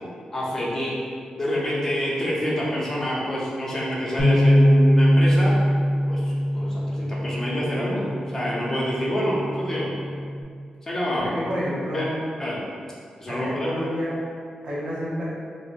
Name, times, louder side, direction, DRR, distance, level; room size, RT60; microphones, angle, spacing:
voice 1, 0.3-1.0 1.3-5.6 6.1-8.1 8.3-9.9 10.8-11.3 11.9-12.1 12.4-12.6 13.2-13.7, equal, 20° left, -6 dB, 0.6 m, -27 dB
Bass guitar, 4.2-10.4, equal, 65° left, 0.6 m, -22 dB
voice 2, 11.1-12.2 13.3-14.2 14.6-15.3, equal, 35° right, -7 dB, 0.7 m, -29 dB
4.2 x 2.0 x 2.5 m, 2.2 s
wide cardioid pair, 175°, 2 cm